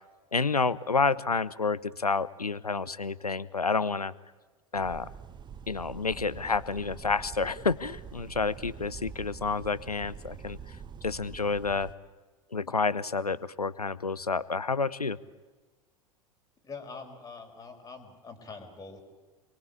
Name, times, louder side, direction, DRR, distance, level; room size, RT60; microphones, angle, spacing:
voice 1, 0.3-4.1 4.7-5.1 5.7-10.8 11.0-11.9 12.5-15.2, left 4 dB, 85° left, 18 dB, 0.9 m, -29 dB
sound 1, 4.7-11.9, right 7 dB, 25° right, 1.3 m, -45 dB
voice 2, 16.6-19.0, left 4 dB, 20° left, 3 dB, 5.9 m, -44 dB
28.5 x 23.0 x 8.6 m, 1.3 s
figure-of-eight pair, 85°, 19 cm